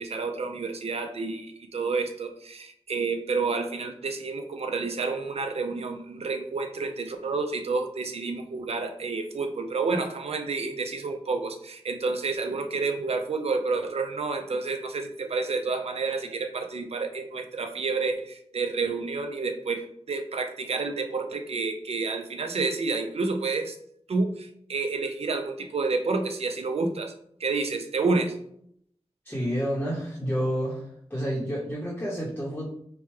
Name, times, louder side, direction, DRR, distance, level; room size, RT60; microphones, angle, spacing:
voice 1, 0.0-23.8 24.1-27.1 27.4-28.4, right 4 dB, 65° right, 6 dB, 0.5 m, -29 dB
voice 2, 29.2-32.7, equal, 15° left, -6 dB, 0.8 m, -29 dB
4.4 x 2.2 x 3.1 m, 0.69 s
wide cardioid pair, 100°, 11 cm